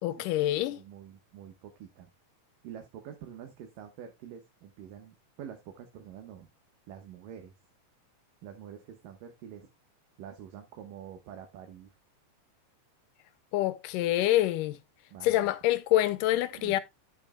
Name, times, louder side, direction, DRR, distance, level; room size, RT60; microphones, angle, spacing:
voice 1, 0.0-0.8 13.5-14.8 15.2-16.8, left 14 dB, 85° left, 2.3 m, -26 dB
voice 2, 0.6-2.1 2.6-6.5 6.9-7.5 8.4-9.7 10.2-11.9 15.1-15.5 16.5-16.8, right 9 dB, 90° right, 2.9 m, -46 dB
11.5 x 8.1 x 2.2 m
omnidirectional pair, 3.8 m